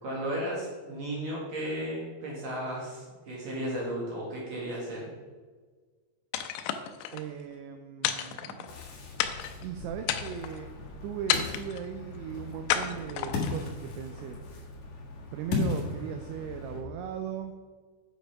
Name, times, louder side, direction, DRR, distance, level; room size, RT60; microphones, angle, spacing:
voice 1, 0.0-5.1, right 1 dB, 65° right, -4 dB, 1.7 m, -34 dB
sound 1, 6.3-7.2 8.0-8.8 9.2-9.6 10.0-10.6 11.3-11.9 12.7-13.6, left 10 dB, 85° left, 2.6 m, -31 dB
voice 2, 7.1-8.9 9.6-10.7 11.0-14.4 15.3-17.5, right 8 dB, 85° right, 6 dB, 2.6 m, -38 dB
Ocean, 8.7-16.8, left 4 dB, 60° left, 2.0 m, -37 dB
9.0 x 5.1 x 5.7 m, 1.5 s
omnidirectional pair, 5.9 m